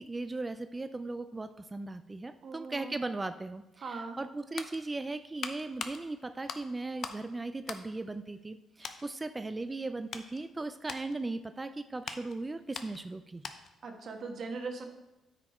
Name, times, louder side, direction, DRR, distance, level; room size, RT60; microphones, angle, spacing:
voice 1, 0.0-13.4, right 2 dB, 20° right, 10 dB, 0.4 m, -38 dB
voice 2, 2.4-3.0 3.8-4.2 13.8-14.9, right 4 dB, 60° right, 3 dB, 1.3 m, -40 dB
sound 1, 4.3-7.3 7.6-8.5 8.8-9.1 9.6-13.9 14.1-14.3, left 6 dB, 60° left, 0.6 m, -44 dB
9.3 x 5.1 x 4.4 m, 0.99 s
cardioid pair, 90°, 0 cm